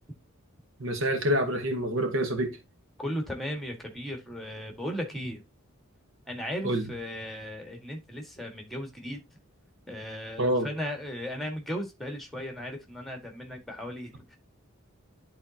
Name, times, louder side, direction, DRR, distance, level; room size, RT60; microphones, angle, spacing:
voice 1, 0.8-2.6 6.6-6.9 10.4-10.7, right 1 dB, 65° right, 1.2 m, -27 dB
voice 2, 3.0-5.4 6.2-9.2 9.9-14.4, equal, ahead, 1.7 m, -36 dB
11.0 x 4.1 x 2.8 m
head